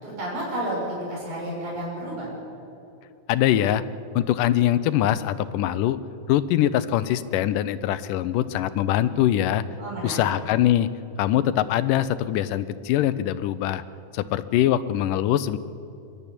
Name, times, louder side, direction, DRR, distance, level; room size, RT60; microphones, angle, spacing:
voice 1, 0.0-2.3 9.7-10.3, right 1 dB, 40° right, -5 dB, 7.7 m, -31 dB
voice 2, 3.3-3.8 4.2-6.0 6.3-9.6 10.0-10.9 11.2-13.8 14.1-15.6, left 12 dB, 80° left, 14 dB, 2.1 m, -23 dB
23.0 x 12.5 x 9.9 m, 2.6 s
omnidirectional pair, 4.0 m